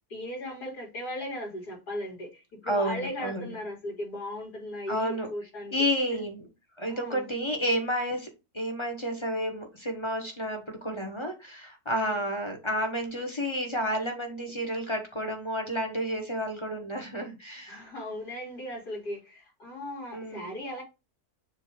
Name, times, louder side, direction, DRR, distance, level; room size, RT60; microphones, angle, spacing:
voice 1, 0.1-5.8 6.1-6.2 6.9-7.3 12.0-12.3 17.7-20.8, left 1 dB, 80° left, 3.9 m, -37 dB
voice 2, 2.7-3.4 4.9-5.3 5.7-6.5 6.8-8.3 8.5-17.7 20.1-20.6, equal, 20° left, 1.4 m, -31 dB
7.0 x 3.0 x 4.8 m
omnidirectional pair, 1.7 m